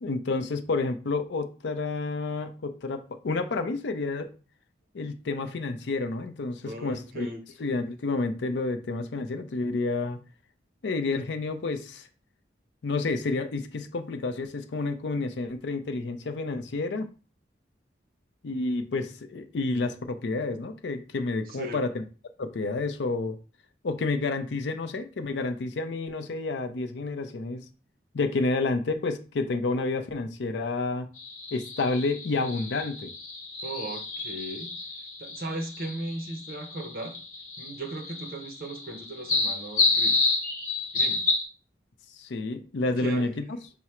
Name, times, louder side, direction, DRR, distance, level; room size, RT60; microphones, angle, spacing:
voice 1, 0.0-4.3 4.9-7.3 7.6-10.2 10.8-12.1 12.8-17.1 18.4-22.0 22.4-23.4 23.8-27.7 28.1-31.1 31.5-33.1 42.2-43.5, left 3 dB, 70° left, 0.5 m, -30 dB
voice 2, 6.6-7.4 21.5-21.8 33.6-34.7 35.2-37.2 37.6-40.2 40.9-41.2 42.8-43.3, right 2 dB, 50° right, 0.7 m, -37 dB
sound 1, 31.2-41.4, left 3 dB, 40° left, 0.9 m, -30 dB
4.7 x 2.0 x 4.3 m
head